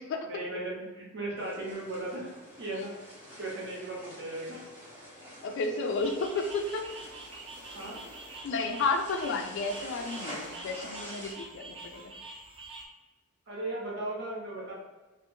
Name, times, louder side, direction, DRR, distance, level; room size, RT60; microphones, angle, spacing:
voice 1, 0.3-2.3 2.6-3.1 3.4-4.6 7.7-8.0 13.5-14.7, right 2 dB, 55° right, -4 dB, 1.0 m, -37 dB
sound 1, 1.4-11.3, equal, 10° right, 0.9 m, -47 dB
voice 2, 5.4-6.9 8.4-12.1, left 3 dB, 60° left, 4 dB, 0.3 m, -32 dB
sound 2, 5.9-12.9, right 2 dB, 25° right, 0.4 m, -46 dB
2.6 x 2.5 x 2.7 m, 1.2 s
head